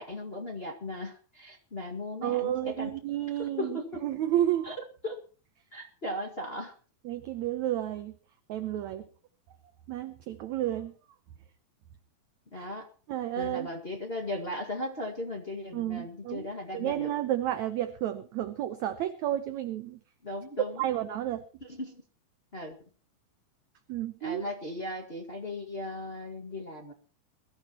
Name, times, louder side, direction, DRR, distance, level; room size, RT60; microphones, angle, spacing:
voice 1, 0.0-2.9 3.4-4.0 4.6-4.7 5.0-5.2 5.7-6.7 12.5-12.9 13.3-17.1 20.2-20.9 21.6-22.0 22.5-22.8 24.2-26.9, left 1 dB, 30° left, 1 dB, 1.1 m, -37 dB
voice 2, 2.2-4.8 7.1-8.2 8.5-9.1 9.9-10.9 12.5-12.7 13.1-13.7 15.7-16.5 16.7-20.0 20.8-21.4 23.9-24.5, right 12 dB, 75° right, 9 dB, 1.8 m, -31 dB
22.0 x 14.5 x 3.0 m, 0.37 s
omnidirectional pair, 4.2 m